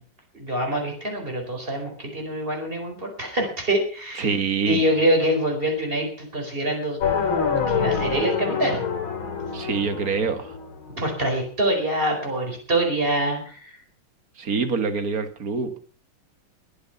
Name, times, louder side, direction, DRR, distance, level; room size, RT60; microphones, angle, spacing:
voice 1, 0.3-4.3 4.7-7.0 7.7-8.8 11.0-13.7, right 1 dB, 25° right, 2 dB, 4.7 m, -25 dB
voice 2, 4.2-4.9 9.5-10.5 14.4-15.7, right 5 dB, 45° right, 9 dB, 2.0 m, -25 dB
sound 1, 7.0-11.0, left 6 dB, 70° left, 2.9 m, -26 dB
21.0 x 8.2 x 5.8 m, 0.44 s
omnidirectional pair, 2.3 m